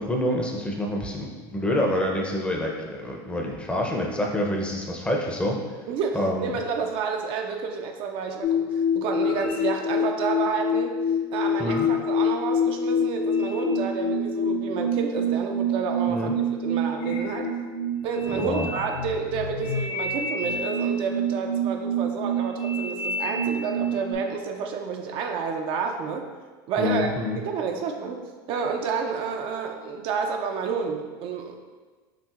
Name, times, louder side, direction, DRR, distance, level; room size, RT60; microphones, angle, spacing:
voice 1, 0.0-5.9 6.1-6.6 11.6-11.9 16.1-16.4 18.3-18.7 26.8-27.4, left 1 dB, 10° left, 0 dB, 0.5 m, -27 dB
voice 2, 6.4-11.0 11.3-16.3 16.6-17.5 18.0-26.2 26.7-27.1 27.5-28.2 28.5-31.6, right 5 dB, 50° right, 4 dB, 0.4 m, -30 dB
sound 1, 8.4-24.1, left 1 dB, 60° left, 0.6 m, -27 dB
5.7 x 2.5 x 2.4 m, 1.4 s
supercardioid pair, 115°, 12 cm